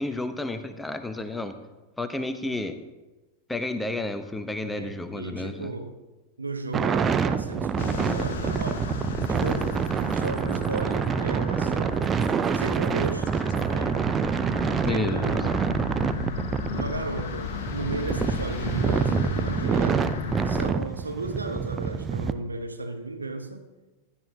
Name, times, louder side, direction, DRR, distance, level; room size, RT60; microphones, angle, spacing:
voice 1, 0.0-1.6 2.0-2.8 3.5-5.7 14.8-15.2, left 2 dB, 5° left, 9 dB, 0.8 m, -31 dB
voice 2, 4.6-6.0 6.4-8.9 9.3-12.1 12.5-14.0 14.9-15.6 16.7-20.1 20.5-23.6, right 3 dB, 80° right, 6 dB, 1.0 m, -35 dB
sound 1, 6.7-22.3, right 6 dB, 20° right, 0.5 m, -27 dB
sound 2, 7.8-20.7, left 6 dB, 55° left, 1.1 m, -35 dB
16.0 x 11.5 x 2.8 m, 1.1 s
figure-of-eight pair, 90°, 0 cm